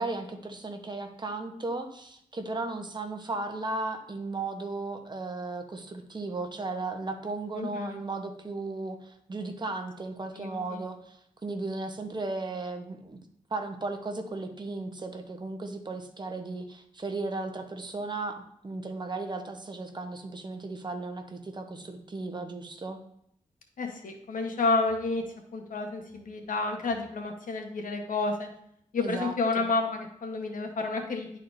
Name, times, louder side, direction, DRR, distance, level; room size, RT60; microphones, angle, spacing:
voice 1, 0.0-13.2 13.5-23.0 29.0-29.7, right 3 dB, 35° right, 5 dB, 0.9 m, -35 dB
voice 2, 7.6-8.0 10.4-10.8 23.8-25.2 25.5-28.5 28.9-31.4, left 3 dB, 75° left, 4 dB, 1.1 m, -30 dB
11.0 x 4.2 x 2.6 m, 0.72 s
wide cardioid pair, 100°, 14 cm